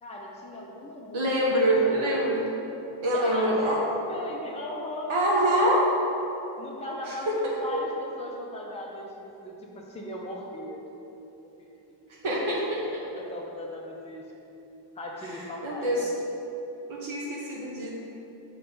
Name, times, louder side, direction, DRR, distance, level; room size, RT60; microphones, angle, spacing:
voice 1, 0.0-2.2 3.1-5.8 6.6-10.8 11.6-12.0 12.3-12.7 13.1-14.2 14.9-16.1, left 1 dB, 15° left, -3 dB, 0.7 m, -38 dB
voice 2, 1.1-2.4 3.0-3.8 5.1-5.9 7.0-7.1 7.7-7.8 12.2-13.2 15.2-15.3 15.6-16.1 16.9-17.9, right 1 dB, 75° right, -4 dB, 1.1 m, -25 dB
6.0 x 3.4 x 5.3 m, 3.0 s
wide cardioid pair, 95°, 49 cm